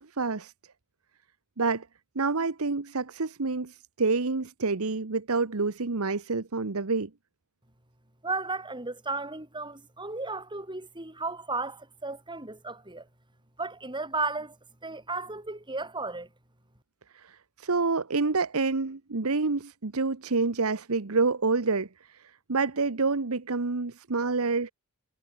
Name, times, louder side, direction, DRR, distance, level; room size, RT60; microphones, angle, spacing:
voice 1, 0.2-0.5 1.6-1.9 2.1-7.1 17.2-21.9 22.5-24.7, right 4 dB, 70° right, 1.1 m, -27 dB
voice 2, 8.2-13.1 13.6-14.6 14.8-16.3, right 3 dB, 20° right, 6.9 m, -34 dB
head